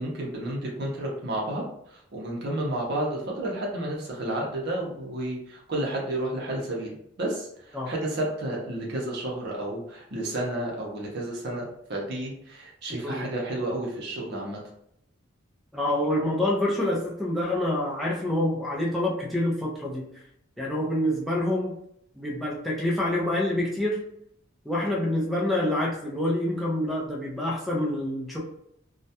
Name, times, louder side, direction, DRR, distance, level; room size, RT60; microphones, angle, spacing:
voice 1, 0.0-14.6, right 1 dB, 55° right, -2 dB, 0.6 m, -31 dB
voice 2, 15.7-20.1 20.6-21.8 22.2-24.0 24.7-28.4, left 1 dB, ahead, -3 dB, 0.4 m, -27 dB
2.2 x 2.1 x 2.7 m, 0.73 s
head